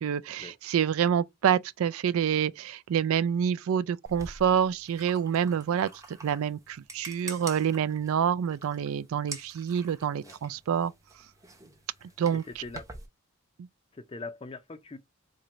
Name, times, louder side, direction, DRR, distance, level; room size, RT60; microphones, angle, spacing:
voice 1, 0.0-10.9 12.2-12.6, right 8 dB, 80° right, 0.3 m, -27 dB
sound 1, 4.1-13.1, right 3 dB, 15° right, 0.7 m, -46 dB
voice 2, 12.3-12.8 13.9-15.0, left 3 dB, 25° left, 0.4 m, -41 dB
4.3 x 2.5 x 2.9 m
head